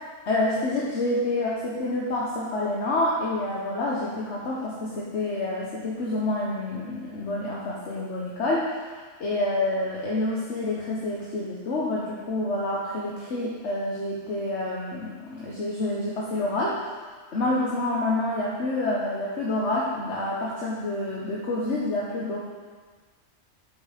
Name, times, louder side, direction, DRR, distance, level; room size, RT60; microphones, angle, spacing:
voice 1, 0.3-8.8 9.2-16.8 17.3-22.4, left 2 dB, 70° left, -5 dB, 1.3 m, -28 dB
8.5 x 5.7 x 5.0 m, 1.5 s
omnidirectional pair, 1.2 m